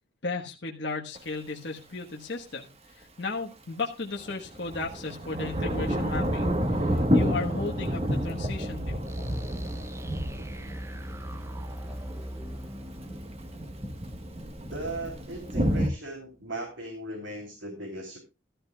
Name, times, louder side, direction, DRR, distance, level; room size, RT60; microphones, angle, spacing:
voice 1, 0.2-9.0, left 3 dB, 60° left, 0 dB, 1.3 m, -35 dB
Thunder / Rain, 1.1-1.2 4.2-15.9, equal, 30° right, 1.3 m, -30 dB
sound 1, 9.0-15.8, equal, 15° right, 0.6 m, -40 dB
voice 2, 14.7-18.2, right 1 dB, 65° right, 3 dB, 3.1 m, -37 dB
15.5 x 12.5 x 2.3 m, 0.28 s
head